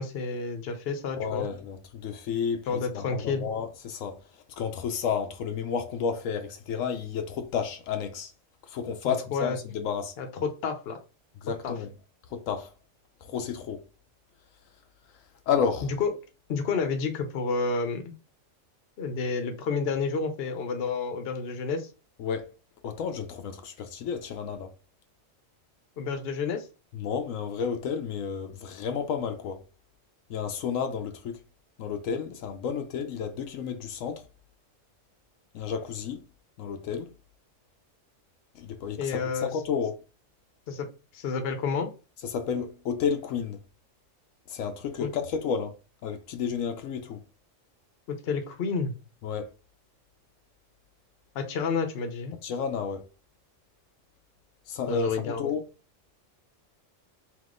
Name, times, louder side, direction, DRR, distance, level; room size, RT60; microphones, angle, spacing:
voice 1, 0.0-1.5 2.7-3.4 9.0-9.6 10.2-11.0 11.6-11.7 15.8-16.1 16.5-18.0 19.0-21.9 26.0-26.6 39.0-39.5 40.7-40.9 41.1-41.9 45.0-45.1 48.1-48.9 51.3-52.4 54.9-55.4, left 5 dB, 55° left, 0.9 m, -30 dB
voice 2, 1.2-2.6 2.9-4.2 4.6-8.3 8.7-10.1 11.4-11.9 12.3-12.7 13.2-13.8 15.5-15.9 22.2-22.5 22.8-24.7 26.9-29.6 30.3-31.4 31.8-34.2 35.5-36.2 36.6-37.1 38.6-40.0 42.2-43.6 44.5-45.7 46.0-47.2 49.2-49.5 52.4-53.0 54.7-55.6, left 7 dB, 80° left, 1.0 m, -31 dB
3.5 x 3.0 x 3.7 m
omnidirectional pair, 1.3 m